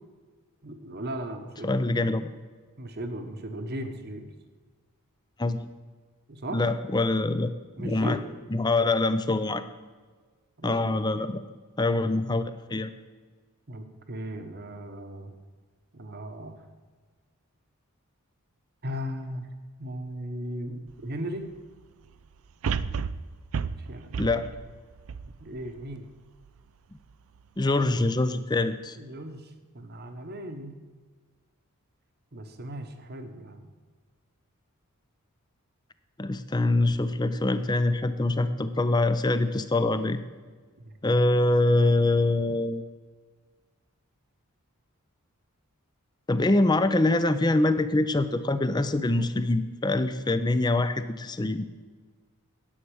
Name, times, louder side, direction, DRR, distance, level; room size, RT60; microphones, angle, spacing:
voice 1, 0.6-1.8 2.8-4.3 6.3-6.6 7.8-8.2 10.6-11.3 13.7-15.4 15.9-16.6 18.8-19.5 19.8-21.5 23.9-24.2 25.2-26.1 29.0-30.7 32.3-33.6 40.8-40.9, equal, 45° right, 7 dB, 1.1 m, -37 dB
voice 2, 1.6-2.3 5.4-5.7 6.5-7.5 7.8-8.2 8.5-9.6 10.6-11.4 11.8-12.9 24.2-24.5 27.6-29.0 36.2-40.2 41.0-42.8 46.3-51.7, left 2 dB, 20° left, 12 dB, 0.5 m, -24 dB
sound 1, 20.9-21.0 22.6-26.0 26.5-26.6, right 6 dB, 70° right, 0.4 m, -32 dB
10.0 x 8.6 x 6.3 m, 1.5 s
head